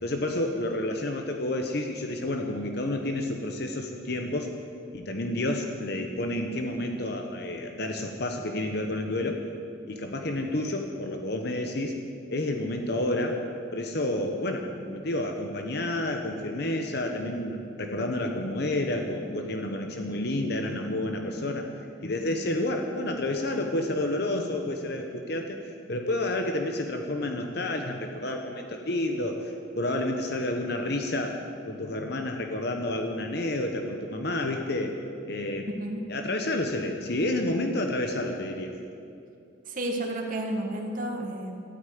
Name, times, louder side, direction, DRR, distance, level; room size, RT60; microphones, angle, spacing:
voice 1, 0.0-4.5 4.9-9.4 9.9-11.9 12.3-13.4 13.7-21.7 22.0-31.4 31.6-34.9 35.3-35.7 36.1-38.7, left 1 dB, 55° left, 3 dB, 1.0 m, -30 dB
voice 2, 39.7-41.6, right 1 dB, 45° right, 1 dB, 1.7 m, -31 dB
13.0 x 9.5 x 9.4 m, 2.6 s
head